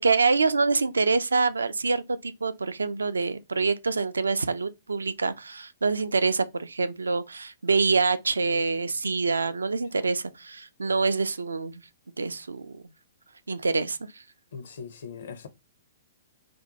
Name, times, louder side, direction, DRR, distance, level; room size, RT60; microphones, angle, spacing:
voice 1, 0.0-11.8 12.2-12.8 13.5-14.2, right 4 dB, 75° right, 0.3 m, -26 dB
voice 2, 14.5-15.5, left 6 dB, 60° left, 0.6 m, -40 dB
2.5 x 2.1 x 3.9 m
figure-of-eight pair, 115°, 0 cm